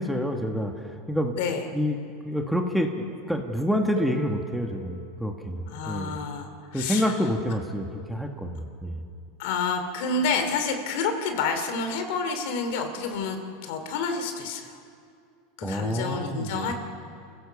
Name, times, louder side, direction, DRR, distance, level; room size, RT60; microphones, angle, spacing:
voice 1, 0.0-1.3 1.7-2.0 2.2-6.2 6.7-9.0 15.6-16.7, equal, ahead, 3 dB, 1.5 m, -28 dB
voice 2, 1.3-1.7 5.7-7.1 9.4-14.7 15.6-16.7, left 4 dB, 70° left, 6 dB, 2.7 m, -29 dB
Harp, 4.0-9.8 10.8-10.9, right 8 dB, 50° right, 3.2 m, -45 dB
28.5 x 16.0 x 6.9 m, 2.3 s
supercardioid pair, 135°, 0 cm